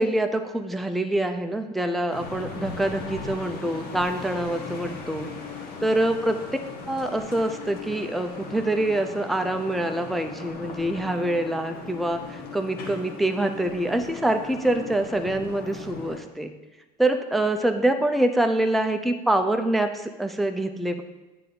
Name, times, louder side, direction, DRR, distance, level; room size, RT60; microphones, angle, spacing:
voice 1, 0.0-5.3 5.8-6.4 6.9-16.5 17.0-21.0, right 1 dB, ahead, 6 dB, 0.4 m, -25 dB
sound 1, 2.1-16.2, left 4 dB, 50° left, 1.2 m, -38 dB
9.0 x 3.3 x 3.9 m, 1.0 s
hypercardioid pair, 70°, 21 cm